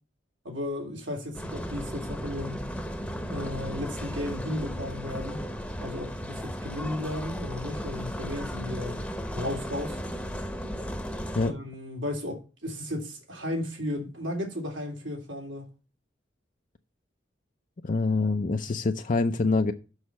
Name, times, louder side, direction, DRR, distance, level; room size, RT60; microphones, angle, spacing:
voice 1, 0.4-2.6 3.3-5.4 5.8-9.0 9.3-10.0 11.4-15.7, left 1 dB, 75° right, 3.1 m, -34 dB
sound 1, 1.3-11.5, equal, 5° left, 0.9 m, -35 dB
voice 2, 17.8-19.7, left 3 dB, 45° left, 0.5 m, -25 dB
6.5 x 6.2 x 7.2 m
head